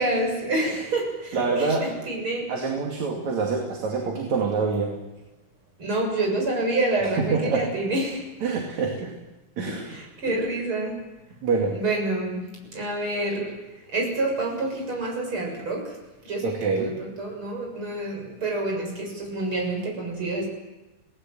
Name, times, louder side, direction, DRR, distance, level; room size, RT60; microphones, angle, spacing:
voice 1, 0.0-2.5 5.8-8.3 9.9-11.0 11.7-12.4 12.7-13.6 13.9-15.9 16.2-20.5, right 2 dB, 40° right, 0 dB, 7.9 m, -27 dB
voice 2, 1.3-1.9 2.5-5.0 7.3-7.7 8.4-9.1 9.6-9.9 11.4-11.8 16.4-16.9, right 4 dB, 60° right, 0 dB, 3.8 m, -26 dB
28.0 x 18.5 x 7.7 m, 1.0 s
omnidirectional pair, 3.7 m